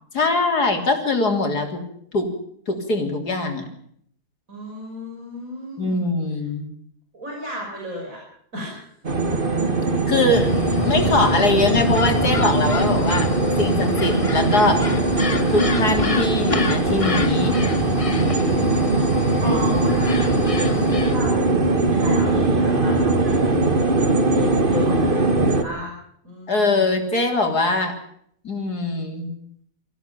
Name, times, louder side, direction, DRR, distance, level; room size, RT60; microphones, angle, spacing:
voice 1, 0.1-1.8 2.1-2.3 2.7-3.7 5.8-6.7 10.1-10.5 10.8-13.3 13.6-14.8 15.5-17.6 19.4-19.6 26.5-27.9 28.4-29.3, left 2 dB, 70° left, 3 dB, 4.0 m, -22 dB
voice 2, 4.5-6.1 6.3-6.4 7.1-8.2 8.5-9.0 10.2-10.4 10.8-11.1 18.3-25.9 26.2-27.0, equal, 55° right, -2 dB, 6.6 m, -35 dB
sound 1, 9.0-25.6, right 2 dB, 30° right, 1.9 m, -20 dB
sound 2, 10.3-21.3, left 3 dB, 25° left, 1.0 m, -29 dB
25.0 x 15.5 x 7.0 m, 0.67 s
omnidirectional pair, 1.7 m